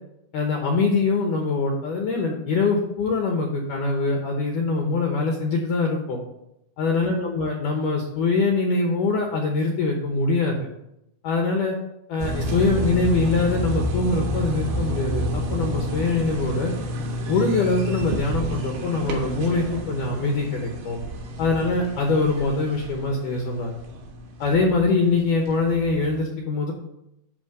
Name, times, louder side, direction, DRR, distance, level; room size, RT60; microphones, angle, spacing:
voice 1, 0.3-6.2 6.8-10.7 11.2-11.8 12.1-16.7 17.3-21.0 21.4-23.7 24.4-26.7, left 3 dB, 70° left, 1 dB, 2.1 m, -23 dB
sound 1, 12.2-26.2, equal, 75° right, 3.1 m, -30 dB
11.0 x 3.7 x 6.6 m, 0.83 s
omnidirectional pair, 4.6 m